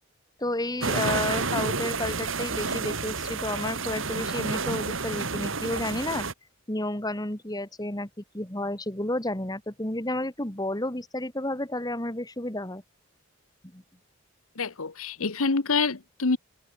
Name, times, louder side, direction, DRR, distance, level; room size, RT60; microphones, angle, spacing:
voice 1, 0.4-6.3 6.7-12.8 13.7-13.8, left 1 dB, 15° left, 2.5 m, -31 dB
sound 1, 0.8-6.3, right 4 dB, 60° right, 2.6 m, -30 dB
voice 2, 14.5-16.4, left 4 dB, 75° left, 1.2 m, -26 dB
head